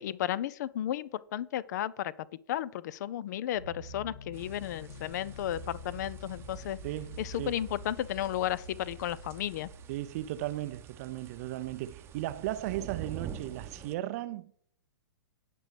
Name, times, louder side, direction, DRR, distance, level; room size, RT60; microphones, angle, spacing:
voice 1, 0.0-2.1 2.5-6.8 7.2-9.7, left 12 dB, 50° left, 0.5 m, -33 dB
sound 1, 3.5-10.7, left 1 dB, 80° left, 3.4 m, -47 dB
sound 2, 4.3-13.9, right 8 dB, 20° right, 0.8 m, -48 dB
voice 2, 6.8-7.5 9.9-14.5, right 15 dB, 40° right, 0.5 m, -36 dB
17.5 x 6.1 x 3.3 m
figure-of-eight pair, 115°, 12 cm